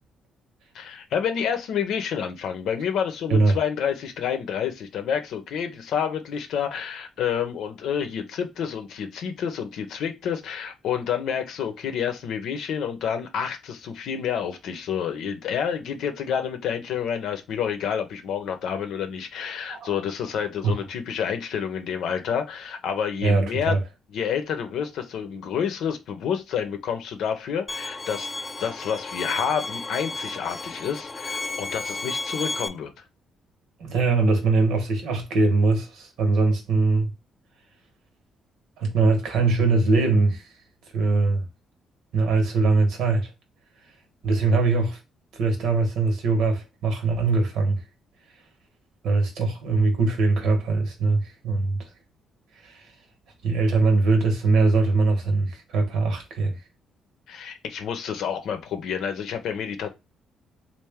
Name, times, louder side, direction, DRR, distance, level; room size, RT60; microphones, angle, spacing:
voice 1, 0.7-23.8 24.1-28.3 28.6-32.9 57.3-59.9, left 8 dB, 80° left, 0.7 m, -29 dB
voice 2, 23.2-23.8 33.8-37.1 38.8-40.5 40.9-41.5 42.1-43.3 44.2-45.0 45.3-47.8 49.0-51.8 52.6-52.9 53.4-56.6, right 3 dB, 80° right, 1.2 m, -22 dB
Bowed string instrument, 27.7-32.7, left 2 dB, 25° left, 0.4 m, -33 dB
3.3 x 2.5 x 3.5 m
cardioid pair, 90°, 0 cm